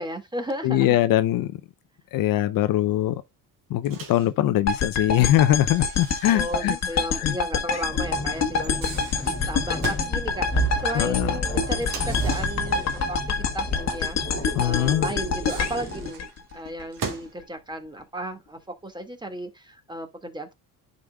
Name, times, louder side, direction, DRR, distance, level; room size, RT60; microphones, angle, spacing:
voice 1, 0.0-1.1 6.3-9.0 9.5-16.3 16.5-20.5, right 1 dB, 10° right, 2.0 m, -34 dB
voice 2, 0.6-1.5 2.1-3.2 3.7-6.8 7.2-7.4 10.9-11.3 14.5-15.1, left 13 dB, 65° left, 0.6 m, -22 dB
Microwave oven, 3.9-4.3 5.7-7.0 7.3-7.4 8.5-10.2 11.8-13.2 15.2-17.4, right 5 dB, 60° right, 2.2 m, -39 dB
sound 1, 4.7-16.8, left 5 dB, 45° left, 1.3 m, -27 dB
sound 2, 7.9-16.1, right 1 dB, 20° left, 2.7 m, -32 dB
11.0 x 5.2 x 2.3 m
cardioid pair, 95°, 37 cm